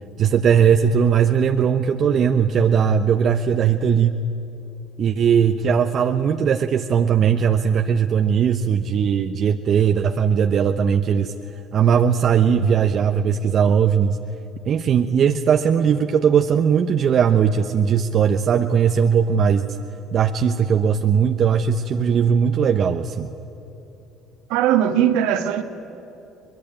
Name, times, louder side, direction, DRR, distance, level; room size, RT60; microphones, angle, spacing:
voice 1, 0.2-4.2 5.0-11.3 11.7-14.2 14.6-19.6 20.1-23.3, right 7 dB, 50° right, 0.9 m, -19 dB
voice 2, 24.5-25.6, right 10 dB, 70° right, 1.6 m, -19 dB
23.5 x 20.5 x 9.5 m
hypercardioid pair, 60°, 0 cm